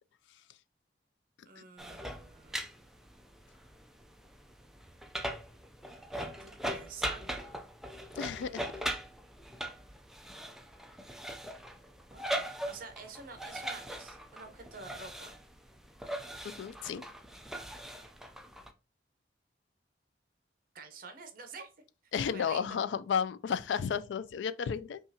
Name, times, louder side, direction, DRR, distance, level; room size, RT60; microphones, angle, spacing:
voice 1, 1.5-2.9 6.1-7.6 12.1-15.3 20.7-21.7 22.1-22.7, right 4 dB, 50° right, 0.8 m, -49 dB
sound 1, 1.8-18.7, right 1 dB, ahead, 0.3 m, -40 dB
voice 2, 8.2-8.7 16.4-17.0 22.1-25.0, left 7 dB, 90° left, 0.3 m, -33 dB
5.4 x 2.4 x 2.7 m
head